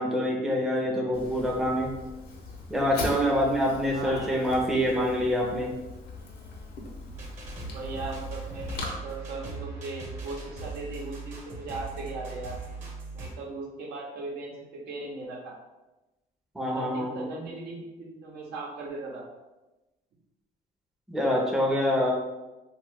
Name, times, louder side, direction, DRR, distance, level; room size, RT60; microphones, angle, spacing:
voice 1, 0.0-1.9 2.7-5.8 16.5-17.2 21.1-22.1, equal, ahead, -2 dB, 0.6 m, -26 dB
Fire, 1.1-8.9, left 3 dB, 65° left, 0.7 m, -40 dB
voice 2, 3.9-4.5 7.7-12.6 13.1-15.5 16.7-19.2, right 3 dB, 75° right, -2 dB, 0.8 m, -38 dB
sound 1, 7.1-13.3, right 3 dB, 45° right, 1.0 m, -39 dB
2.8 x 2.3 x 3.4 m, 1.0 s
cardioid pair, 110°, 17 cm